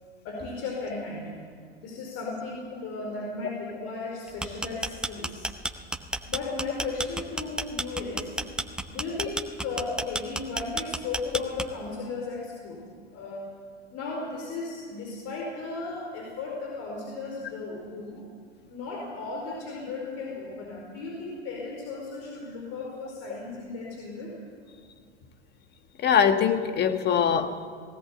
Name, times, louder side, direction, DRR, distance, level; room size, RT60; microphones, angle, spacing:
voice 1, 0.2-1.4 1.8-5.5 6.2-8.4 8.9-12.8 13.1-13.5 13.9-18.2 18.7-24.4, left 3 dB, 45° left, -1 dB, 4.8 m, -35 dB
sound 1, 4.3-11.9, right 1 dB, ahead, 0.7 m, -31 dB
voice 2, 26.0-27.7, left 7 dB, 30° left, 9 dB, 1.4 m, -22 dB
19.0 x 17.5 x 8.3 m, 2.1 s
hypercardioid pair, 105°, 35 cm